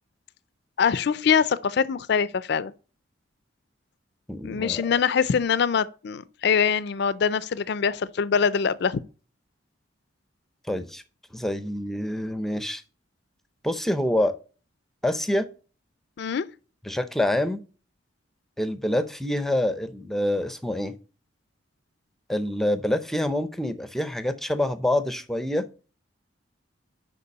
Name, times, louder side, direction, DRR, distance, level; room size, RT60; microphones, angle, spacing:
voice 1, 0.8-2.7 4.4-9.0 16.2-16.4, left 6 dB, 55° left, 0.4 m, -23 dB
voice 2, 4.3-4.9 10.7-11.0 11.3-12.8 13.6-14.4 15.0-15.5 16.8-17.6 18.6-20.9 22.3-25.7, left 1 dB, ahead, 0.5 m, -26 dB
6.7 x 5.3 x 5.3 m
head